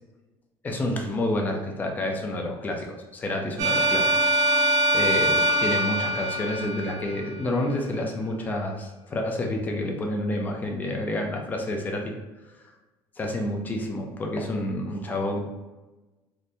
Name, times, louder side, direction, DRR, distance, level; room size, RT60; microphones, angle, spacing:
voice 1, 0.6-4.6 4.9-12.1 13.2-15.4, left 1 dB, 15° left, 2 dB, 0.4 m, -29 dB
sound 1, 3.6-7.5, right 1 dB, 40° right, 0.5 m, -23 dB
3.3 x 2.7 x 2.6 m, 1.1 s
cardioid pair, 175°, 10 cm